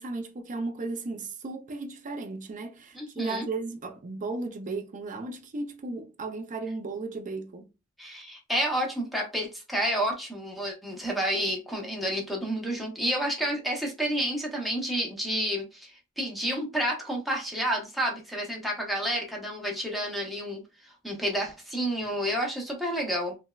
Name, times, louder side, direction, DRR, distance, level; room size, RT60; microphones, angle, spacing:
voice 1, 0.0-7.7, right 3 dB, 35° right, 0.5 m, -35 dB
voice 2, 2.9-3.5 8.0-20.6 21.0-23.4, equal, ahead, 0.8 m, -30 dB
3.3 x 2.1 x 2.3 m
head